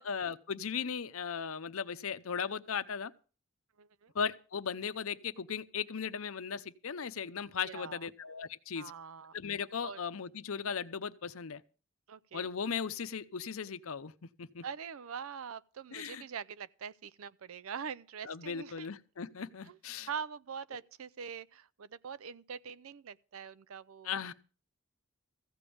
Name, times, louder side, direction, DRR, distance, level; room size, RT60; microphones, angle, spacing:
voice 1, 0.0-3.1 4.1-8.9 9.3-11.6 12.3-14.1 14.4-14.6 15.9-16.2 18.3-20.1 24.0-24.3, left 6 dB, 75° left, 0.7 m, -37 dB
voice 2, 3.8-4.1 7.6-8.1 8.7-9.4 9.8-10.0 12.1-12.5 14.6-18.9 19.7-19.8 20.1-24.2, right 7 dB, 75° right, 0.5 m, -43 dB
15.0 x 5.3 x 8.5 m
head